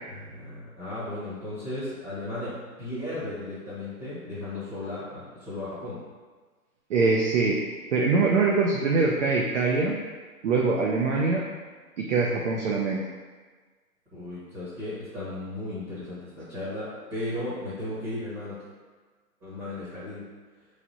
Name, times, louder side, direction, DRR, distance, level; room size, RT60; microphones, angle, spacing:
voice 1, 0.1-5.0 5.3-6.0 14.1-18.6 19.4-20.3, left 1 dB, 15° right, -11 dB, 0.9 m, -35 dB
voice 2, 6.9-7.6 7.9-10.0 10.4-11.4 12.0-13.0, right 4 dB, 55° right, -2 dB, 0.5 m, -23 dB
3.2 x 2.4 x 3.9 m, 1.4 s
hypercardioid pair, 145°, 46 cm